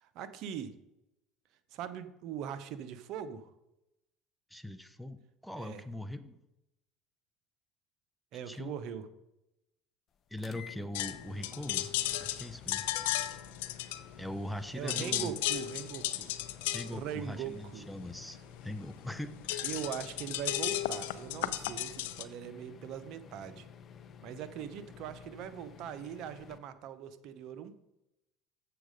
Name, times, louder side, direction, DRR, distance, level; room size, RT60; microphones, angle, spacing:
voice 1, 0.0-0.7 1.7-3.5 5.6-5.8 8.3-9.1 14.7-16.3 16.9-17.9 19.6-23.7 24.2-27.7, right 9 dB, 65° right, 12 dB, 0.8 m, -41 dB
voice 2, 4.5-6.4 8.5-8.8 10.3-11.9 12.2-12.9 14.2-15.4 16.7-19.8, left 1 dB, ahead, 9 dB, 0.7 m, -41 dB
sound 1, 10.4-26.6, left 7 dB, 40° left, 0.6 m, -52 dB
sound 2, 10.9-14.5 14.8-22.2, left 14 dB, 90° left, 0.5 m, -35 dB
7.4 x 6.8 x 5.1 m, 0.90 s
supercardioid pair, 100°, 0 cm